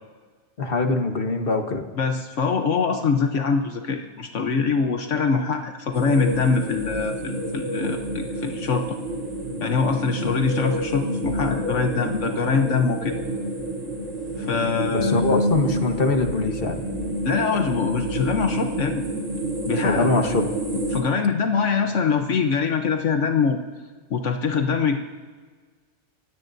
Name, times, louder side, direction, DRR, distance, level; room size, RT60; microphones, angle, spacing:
voice 1, 0.6-1.8 14.9-16.8 19.8-20.4, left 3 dB, 50° left, 5 dB, 1.4 m, -23 dB
voice 2, 2.0-9.0 9.6-13.2 14.4-15.4 17.2-19.0 19.6-20.1 20.7-23.6 24.1-25.0, left 5 dB, 75° left, 5 dB, 1.2 m, -23 dB
sound 1, 5.9-21.0, right 1 dB, 80° right, 3.4 m, -28 dB
28.5 x 16.5 x 2.7 m, 1.4 s
omnidirectional pair, 1.3 m